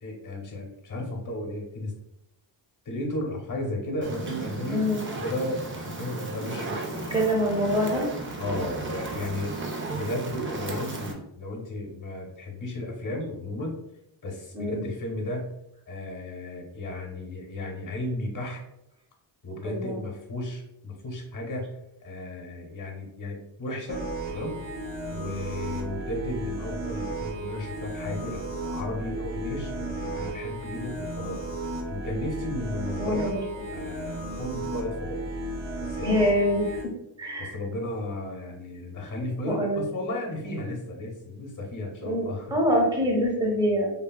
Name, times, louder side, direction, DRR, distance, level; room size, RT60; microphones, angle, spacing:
voice 1, 0.0-1.9 2.8-4.8 5.2-7.3 8.4-9.5 9.9-13.8 14.2-15.5 15.9-18.6 19.4-21.7 22.0-24.0 24.3-24.6 25.1-33.3 33.7-35.2 35.8-36.2 37.4-42.6, left 1 dB, 40° left, 1 dB, 0.8 m, -34 dB
Fire, 4.0-11.1, right 3 dB, 30° right, 0.4 m, -35 dB
voice 2, 4.7-5.0 6.9-8.1 14.5-14.9 19.6-20.1 33.0-33.5 36.0-36.8 37.2-37.6 39.5-39.8 42.0-42.2 42.5-43.9, equal, 10° right, -1 dB, 0.7 m, -25 dB
sound 1, 23.9-36.8, right 2 dB, 65° right, 0.7 m, -34 dB
3.4 x 2.2 x 2.2 m, 0.83 s
wide cardioid pair, 120°, 48 cm